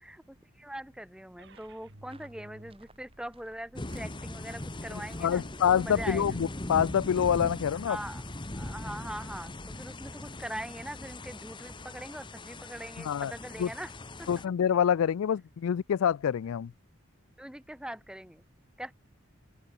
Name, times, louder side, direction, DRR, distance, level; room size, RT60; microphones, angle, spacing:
voice 1, 0.0-5.4 5.8-6.3 7.7-8.2 8.5-13.9 14.2-14.3 17.4-18.4 18.8-18.9, right 1 dB, 5° right, 1.2 m, -42 dB
sound 1, 1.4-7.4, right 1 dB, 55° right, 3.7 m, -57 dB
sound 2, 1.5-9.6, right 4 dB, 25° right, 6.6 m, -63 dB
sound 3, 3.8-14.5, left 1 dB, 20° left, 1.2 m, -40 dB
voice 2, 5.2-8.0 13.0-13.3 13.6-13.7 14.3-16.7, left 8 dB, 75° left, 0.3 m, -26 dB
head